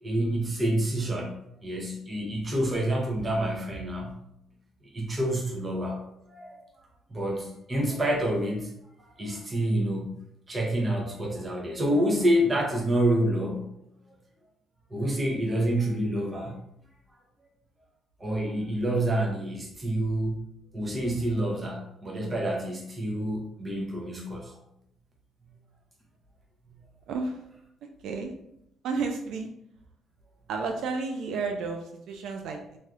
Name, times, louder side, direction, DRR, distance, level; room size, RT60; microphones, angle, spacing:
voice 1, 0.0-4.2 4.9-6.6 7.1-8.7 9.0-10.2 10.5-13.7 14.9-16.6 18.2-20.4 20.7-24.6 26.7-26.8, right 1 dB, 25° right, 0 dB, 0.7 m, -28 dB
voice 2, 27.1-27.4 28.0-28.3 28.8-29.5 30.5-32.8, right 4 dB, 75° right, 3 dB, 0.3 m, -32 dB
3.3 x 2.6 x 2.4 m, 0.78 s
cardioid pair, 120°, 0 cm